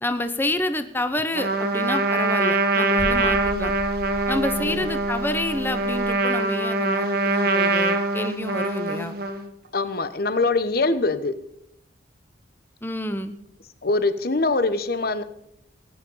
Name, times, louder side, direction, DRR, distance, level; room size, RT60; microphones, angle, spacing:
voice 1, 0.0-3.7 4.3-9.2 12.8-13.4, left 1 dB, 10° left, 9 dB, 0.9 m, -28 dB
Trumpet, 1.3-9.5, right 2 dB, 55° right, 1.7 m, -23 dB
sound 1, 3.0-6.1, equal, 75° left, 5.3 m, -36 dB
voice 2, 4.6-4.9 9.7-11.4 13.8-15.2, left 3 dB, 55° left, 12 dB, 1.1 m, -23 dB
19.0 x 9.6 x 5.6 m, 0.75 s
head